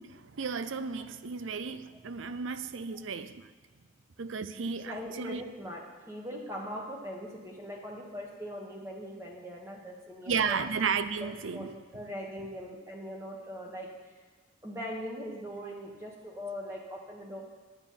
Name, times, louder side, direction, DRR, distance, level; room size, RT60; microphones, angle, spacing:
voice 1, 0.1-3.5 4.2-5.4 10.3-11.7, right 5 dB, 85° right, 0.6 m, -33 dB
voice 2, 4.8-10.6 11.2-14.2 14.6-17.4, equal, 15° right, 1.5 m, -41 dB
9.3 x 8.9 x 5.6 m
head